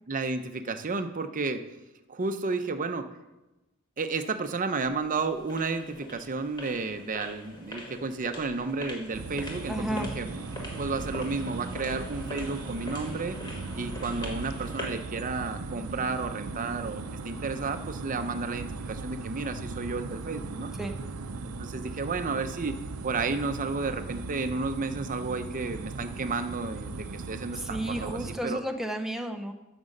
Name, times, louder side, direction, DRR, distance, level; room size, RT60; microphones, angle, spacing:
voice 1, 0.1-1.7 2.1-3.1 4.0-10.3 10.8-13.4 13.7-20.7 21.4-28.6, right 4 dB, 40° right, 8 dB, 0.7 m, -32 dB
sound 1, 4.8-15.1, left 1 dB, 20° left, 1.5 m, -43 dB
sound 2, 9.1-28.4, right 3 dB, 80° right, 0.6 m, -38 dB
voice 2, 9.7-10.1 20.8-21.0 27.6-29.5, right 1 dB, ahead, 4 dB, 0.6 m, -32 dB
9.4 x 6.1 x 6.5 m, 1.0 s
head